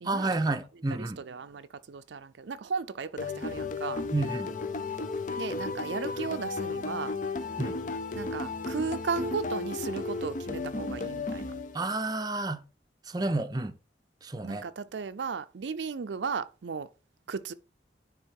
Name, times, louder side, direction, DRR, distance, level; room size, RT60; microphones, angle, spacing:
voice 1, 0.0-1.2 4.1-4.5 7.6-7.8 11.7-12.6 13.1-13.8 14.2-14.6, right 2 dB, 20° right, 0.6 m, -30 dB
voice 2, 0.9-4.0 5.4-7.1 8.2-11.5 14.4-16.9 17.3-17.5, right 5 dB, 75° right, 0.5 m, -35 dB
sound 1, 3.2-12.1, left 3 dB, 45° left, 0.6 m, -34 dB
9.8 x 3.6 x 4.7 m
head